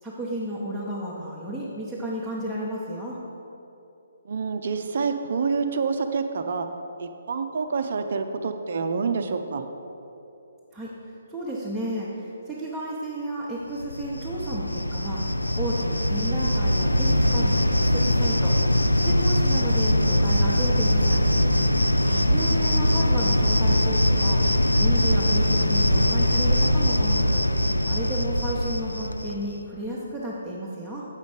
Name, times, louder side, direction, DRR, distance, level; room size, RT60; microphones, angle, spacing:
voice 1, 0.0-3.2 10.7-10.9 11.3-21.2 22.3-27.4 27.8-31.1, right 1 dB, ahead, -10 dB, 0.9 m, -33 dB
voice 2, 4.3-6.7 7.0-9.7 22.0-22.3, right 5 dB, 50° right, 7 dB, 0.4 m, -27 dB
Cricket, 13.8-29.5, left 1 dB, 90° left, 0.4 m, -22 dB
8.0 x 5.0 x 5.4 m, 2.9 s
figure-of-eight pair, 135°, 0 cm